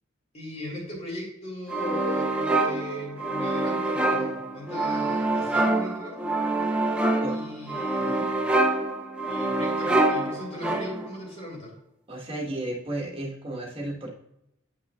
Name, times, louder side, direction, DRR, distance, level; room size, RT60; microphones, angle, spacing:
voice 1, 0.3-6.3 7.3-8.5 9.3-11.7, left 1 dB, 35° left, -2 dB, 2.5 m, -38 dB
sound 1, 1.7-11.2, right 2 dB, 5° right, 0.5 m, -26 dB
voice 2, 12.1-14.1, right 1 dB, 30° right, -1 dB, 1.4 m, -33 dB
9.1 x 5.6 x 2.4 m, 0.81 s
head